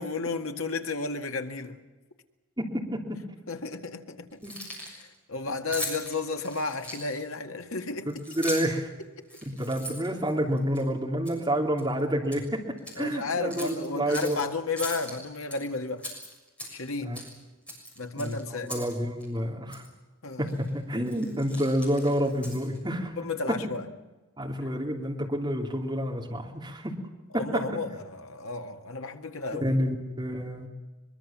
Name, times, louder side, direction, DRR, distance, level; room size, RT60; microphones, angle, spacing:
voice 1, 0.0-1.8 3.5-4.4 4.7-8.1 9.2-9.3 13.0-16.1 16.7-17.2 18.0-18.7 20.2-20.6 23.2-23.8 27.3-29.8, left 3 dB, 75° left, 6 dB, 1.8 m, -33 dB
voice 2, 2.6-3.2 4.4-4.5 8.3-8.8 9.5-12.6 13.0-14.4 17.0-17.2 18.2-18.3 18.7-19.9 20.4-23.2 24.4-26.9 27.3-27.4 29.5-30.7, equal, 20° right, 0 dB, 3.2 m, -29 dB
Keys jangling, 4.3-5.0 5.7-7.3 8.1-8.8 9.2-10.8 11.2-11.4 11.8-12.4 12.8-13.0 13.5-14.4 14.8-15.6 16.0-16.9 17.1-17.3 17.7-18.9 19.2-19.3 19.7-19.9 20.5-20.7 21.0-22.8, equal, 5° left, 6.7 m, -39 dB
23.5 x 22.5 x 7.4 m, 1.2 s
head